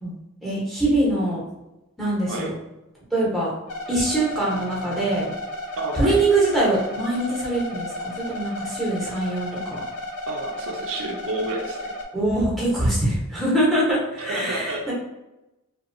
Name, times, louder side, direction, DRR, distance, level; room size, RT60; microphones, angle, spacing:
voice 1, 0.4-1.4 2.0-2.5 3.1-3.5 3.9-5.3 5.9-9.8 12.1-14.9, right 1 dB, ahead, -7 dB, 0.8 m, -23 dB
sound 1, 3.7-12.0, left 1 dB, 80° left, 0.6 m, -33 dB
voice 2, 5.8-6.2 10.3-11.9 14.2-14.9, right 2 dB, 60° right, 0 dB, 0.4 m, -30 dB
2.7 x 2.1 x 2.5 m, 0.95 s
head